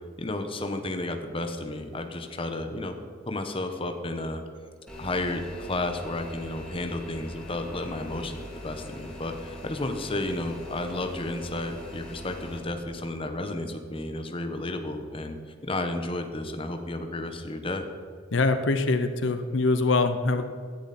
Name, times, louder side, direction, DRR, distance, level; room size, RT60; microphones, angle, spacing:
voice 1, 0.2-3.0 3.3-4.4 5.0-15.4 15.6-17.8, left 2 dB, 30° left, 6 dB, 1.1 m, -32 dB
sound 1, 4.9-12.6, left 1 dB, 5° left, 2.9 m, -42 dB
voice 2, 18.3-20.4, left 3 dB, 80° left, 9 dB, 0.8 m, -24 dB
17.0 x 10.0 x 4.3 m, 2.2 s
head